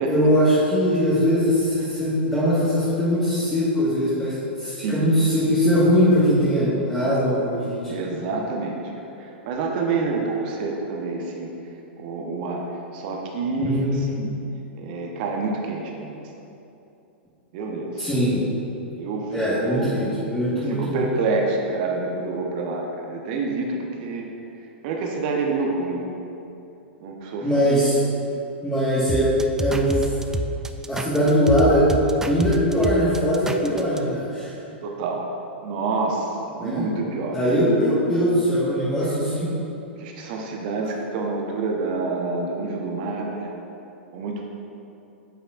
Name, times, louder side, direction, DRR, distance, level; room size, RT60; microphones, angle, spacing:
voice 1, 0.1-8.1 13.6-14.0 18.0-18.4 19.3-21.0 27.4-28.0 28.6-29.3 29.6-30.2 30.9-31.9 32.2-34.5 36.6-36.8 37.3-39.5, equal, 10° left, -10 dB, 1.4 m, -21 dB
voice 2, 7.9-11.5 12.0-14.3 14.8-16.3 17.5-18.1 18.9-20.1 20.5-24.3 24.8-26.0 27.0-27.7 34.8-35.3 35.6-37.4 40.0-43.5 44.1-44.4, right 3 dB, 50° right, 0 dB, 0.9 m, -28 dB
sound 1, 29.1-34.0, right 2 dB, 10° right, 0.3 m, -28 dB
8.7 x 5.5 x 2.4 m, 2.8 s
hypercardioid pair, 100°, 6 cm